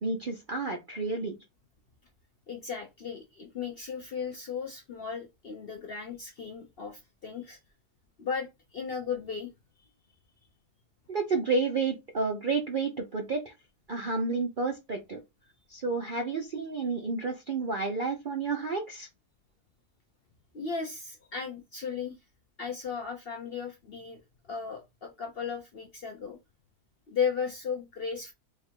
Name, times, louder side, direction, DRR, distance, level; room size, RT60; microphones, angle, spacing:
voice 1, 0.0-1.4 11.1-13.5 13.9-15.2 15.7-19.1, right 4 dB, 55° right, 3 dB, 0.5 m, -30 dB
voice 2, 2.5-7.6 8.2-9.5 9.8-9.9 20.5-22.2 22.6-24.2 24.5-26.4 27.1-28.3, left 6 dB, 55° left, 2 dB, 0.6 m, -35 dB
3.4 x 2.4 x 4.3 m, 0.23 s
omnidirectional pair, 1.6 m